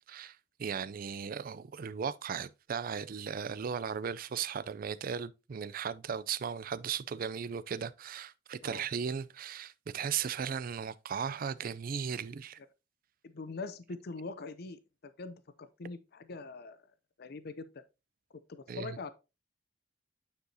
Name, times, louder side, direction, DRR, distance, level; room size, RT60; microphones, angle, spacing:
voice 1, 0.1-12.6 18.7-19.0, right 7 dB, 50° right, 0.4 m, -37 dB
voice 2, 13.2-16.8 17.2-17.7 18.5-19.1, left 3 dB, 60° left, 0.6 m, -43 dB
9.2 x 4.8 x 2.7 m
head